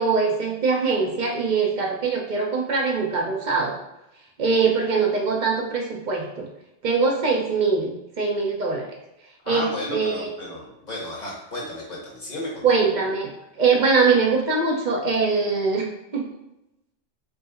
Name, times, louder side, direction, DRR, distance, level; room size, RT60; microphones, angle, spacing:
voice 1, 0.0-3.7 4.4-6.5 6.8-8.9 9.5-10.3 12.6-13.3 13.6-15.9 16.1-16.3, right 4 dB, 45° right, 0 dB, 0.8 m, -22 dB
voice 2, 9.4-12.6, left 1 dB, 40° left, -4 dB, 1.3 m, -33 dB
4.8 x 2.0 x 3.8 m, 0.90 s
omnidirectional pair, 1.2 m